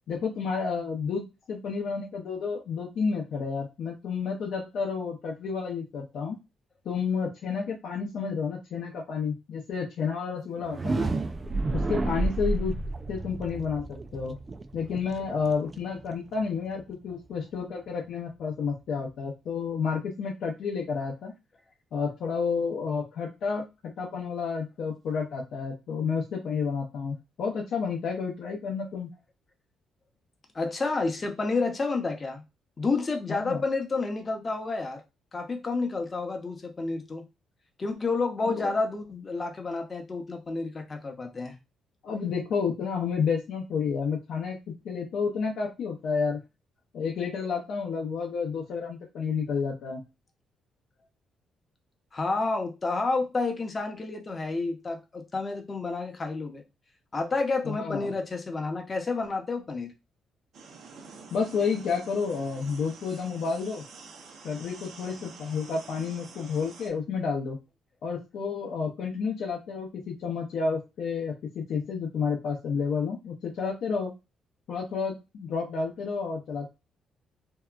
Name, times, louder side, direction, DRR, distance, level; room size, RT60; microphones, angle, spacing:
voice 1, 0.1-1.2 1.5-6.4 6.8-11.1 11.7-12.8 13.1-14.4 14.7-21.3 21.9-23.6 24.0-29.1 33.3-33.6 38.4-38.7 42.0-46.4 46.9-50.0 57.6-58.1 61.3-63.8 64.4-67.6 68.0-74.1 74.7-76.7, left 5 dB, 70° left, 0.6 m, -30 dB
sound 1, 10.6-16.5, right 2 dB, 30° right, 0.3 m, -31 dB
voice 2, 30.5-32.4 32.8-35.0 35.3-37.2 37.8-41.6 52.1-56.6 57.1-59.9, left 3 dB, 30° left, 0.7 m, -30 dB
sound 2, 60.5-66.9, right 4 dB, 70° right, 0.6 m, -48 dB
2.7 x 2.2 x 2.3 m
cardioid pair, 90°, 0 cm